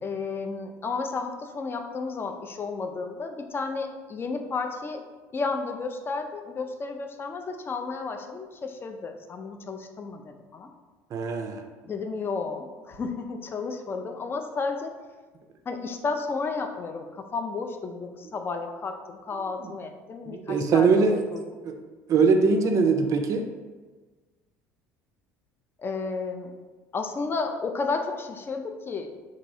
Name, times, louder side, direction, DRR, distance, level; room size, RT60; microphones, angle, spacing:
voice 1, 0.0-5.0 5.3-10.7 11.8-14.9 15.7-20.9 21.3-21.4 22.6-22.8 25.8-26.5 26.9-29.1, left 4 dB, 30° left, 5 dB, 0.4 m, -32 dB
voice 2, 11.1-11.6 19.6-19.7 20.3-21.2 21.6-21.7 22.1-23.4, right 4 dB, 45° right, 5 dB, 0.4 m, -22 dB
3.0 x 2.7 x 2.6 m, 1.3 s
hypercardioid pair, 75°, 8 cm